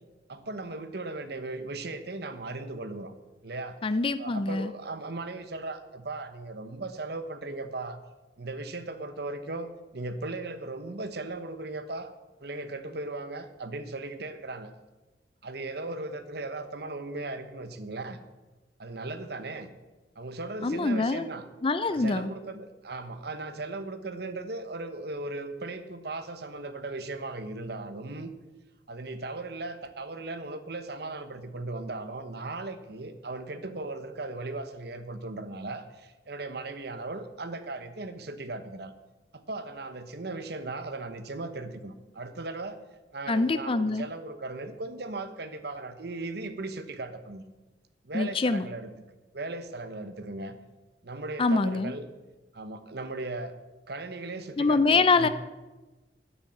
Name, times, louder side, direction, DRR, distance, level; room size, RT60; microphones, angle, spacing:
voice 1, 0.3-3.1 3.4-3.8 4.2-8.0 8.4-12.1 12.4-14.7 15.4-18.2 18.8-19.7 20.2-21.4 21.9-28.3 28.9-38.9 39.3-42.8 43.1-47.4 48.0-48.9 49.3-50.5 51.0-52.1 52.5-53.5 53.9-55.3, right 2 dB, 60° right, 10 dB, 1.1 m, -37 dB
voice 2, 3.8-4.7 20.6-21.3 21.6-22.3 43.3-44.1 48.1-48.7 51.4-51.9 54.6-55.3, left 3 dB, 30° left, 12 dB, 0.4 m, -25 dB
10.0 x 9.9 x 7.7 m, 1.2 s
head